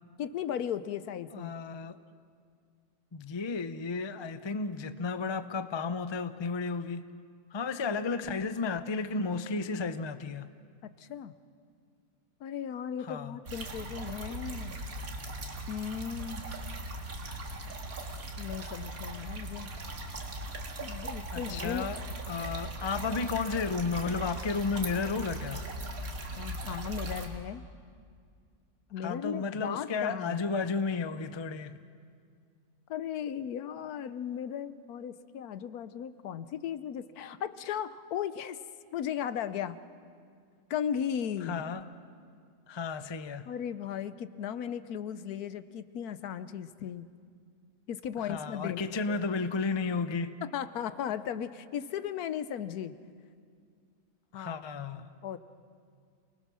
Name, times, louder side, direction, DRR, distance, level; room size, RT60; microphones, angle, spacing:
voice 1, 0.2-1.5 11.0-11.3 12.4-14.8 15.7-16.4 18.4-19.7 20.8-21.8 22.3-22.5 26.4-27.6 28.9-30.4 32.9-38.6 38.9-39.8 40.7-41.6 43.5-47.1 47.9-49.2 50.5-53.0 54.3-54.6 54.9-55.4, left 9 dB, 80° left, 13 dB, 1.3 m, -36 dB
voice 2, 1.3-2.0 3.1-7.0 7.5-10.5 13.0-13.4 21.3-22.0 22.3-25.6 29.0-31.8 41.4-41.9 42.7-43.5 48.2-50.4 54.3-55.1, left 4 dB, 45° left, 11 dB, 0.3 m, -33 dB
sound 1, 13.5-27.3, right 2 dB, 70° right, 2.3 m, -39 dB
28.5 x 19.5 x 6.2 m, 2.1 s
omnidirectional pair, 1.6 m